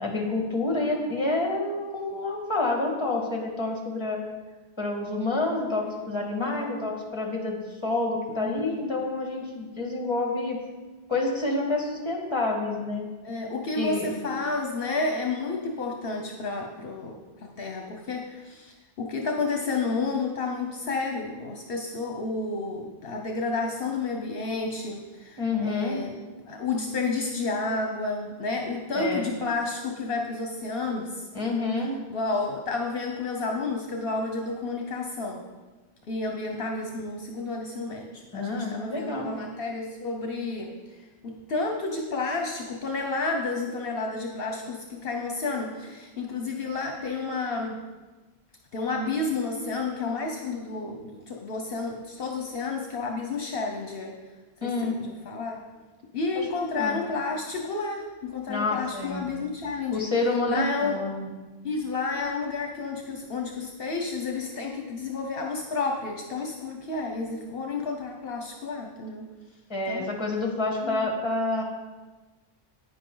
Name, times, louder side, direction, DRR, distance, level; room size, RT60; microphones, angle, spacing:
voice 1, 0.0-4.2 4.8-10.6 11.1-13.0 13.8-14.1 25.4-26.0 28.9-29.3 31.3-31.9 38.3-39.3 54.6-55.0 56.4-57.0 58.5-59.3 59.9-61.3 69.7-71.6, left 2 dB, 25° left, 0 dB, 1.8 m, -28 dB
voice 2, 6.4-6.7 8.3-8.9 13.2-26.2 26.5-31.3 32.1-35.4 36.1-40.7 41.2-47.8 48.7-54.1 54.6-55.6 56.1-60.0 60.5-61.0 61.6-69.3 69.9-70.1 70.8-71.1, left 3 dB, 65° left, 2 dB, 1.1 m, -31 dB
10.0 x 9.4 x 3.9 m, 1.3 s
omnidirectional pair, 1.0 m